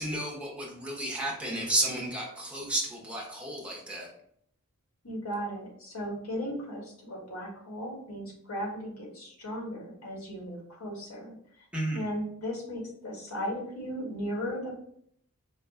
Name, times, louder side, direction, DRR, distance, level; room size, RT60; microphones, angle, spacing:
voice 1, 0.0-4.1 11.7-12.0, right 1 dB, 5° right, -2 dB, 0.8 m, -32 dB
voice 2, 5.0-11.7 11.9-14.7, equal, 85° left, -2 dB, 1.5 m, -36 dB
4.7 x 2.2 x 3.6 m, 0.66 s
head